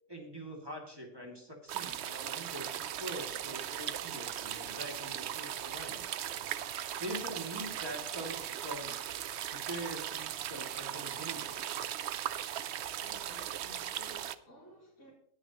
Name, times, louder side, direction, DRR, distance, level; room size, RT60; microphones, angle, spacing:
voice 1, 0.1-6.1 7.0-8.9 9.5-11.6, right 1 dB, 15° right, -1 dB, 2.3 m, -44 dB
sound 1, 1.7-14.3, right 10 dB, 65° right, 0.7 m, -38 dB
voice 2, 13.0-15.1, equal, 60° left, -7 dB, 4.2 m, -54 dB
19.0 x 9.6 x 3.0 m, 0.68 s
omnidirectional pair, 1.6 m